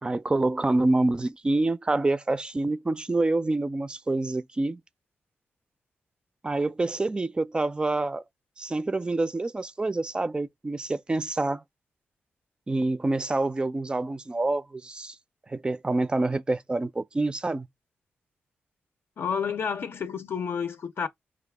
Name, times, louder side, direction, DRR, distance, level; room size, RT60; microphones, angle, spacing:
voice 1, 0.0-4.8 6.4-8.2 8.6-11.6 12.7-15.2 15.5-17.7, right 2 dB, 20° right, 0.4 m, -27 dB
voice 2, 19.2-21.1, left 6 dB, 65° left, 0.5 m, -30 dB
5.1 x 2.3 x 3.4 m
cardioid pair, 85°, 4 cm